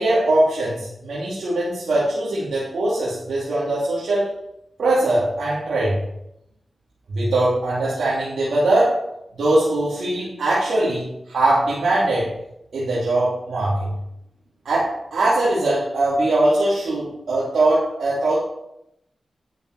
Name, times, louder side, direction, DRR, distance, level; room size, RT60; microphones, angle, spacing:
voice 1, 0.0-4.3 4.8-6.0 7.1-9.0 9.3-12.3 12.7-13.9 14.6-18.4, right 2 dB, 85° right, -8 dB, 2.8 m, -21 dB
10.5 x 7.0 x 4.7 m, 0.82 s
cardioid pair, 45°, 0 cm